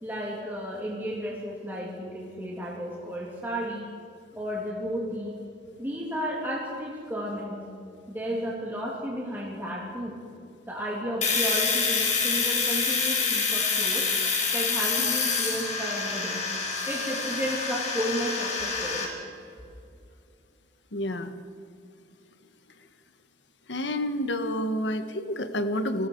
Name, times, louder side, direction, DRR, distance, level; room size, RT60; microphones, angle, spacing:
voice 1, 0.0-3.8 4.3-5.3 5.8-7.6 8.1-10.2 10.7-14.1 14.5-16.5 16.9-19.1, equal, 10° right, -5 dB, 2.9 m, -33 dB
Domestic sounds home sounds, 11.2-19.0, left 4 dB, 45° left, 4.3 m, -27 dB
voice 2, 20.9-21.3 23.7-26.1, left 1 dB, 85° left, 9 dB, 1.5 m, -29 dB
29.5 x 19.0 x 4.7 m, 2.4 s
head